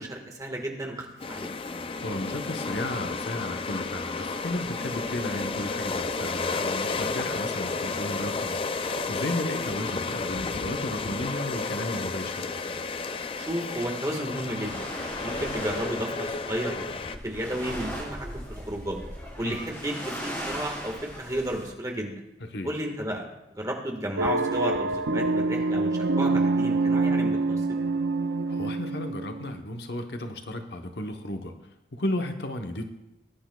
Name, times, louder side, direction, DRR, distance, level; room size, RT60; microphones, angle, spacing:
voice 1, 0.0-1.5 13.4-14.8 15.2-16.8 17.2-19.0 19.4-22.2 22.6-23.3 23.5-27.6, right 1 dB, 20° right, 1 dB, 1.6 m, -33 dB
sound 1, 1.2-17.2, left 4 dB, 30° left, 0.4 m, -32 dB
voice 2, 2.0-12.5 19.4-19.6 22.5-22.7 28.5-31.5 31.9-32.8, left 1 dB, 65° left, 5 dB, 1.0 m, -34 dB
sound 2, 14.6-21.7, equal, 15° left, 4.0 m, -38 dB
sound 3, 24.2-29.6, right 3 dB, 85° right, 0.6 m, -26 dB
20.5 x 10.5 x 2.3 m, 0.90 s
head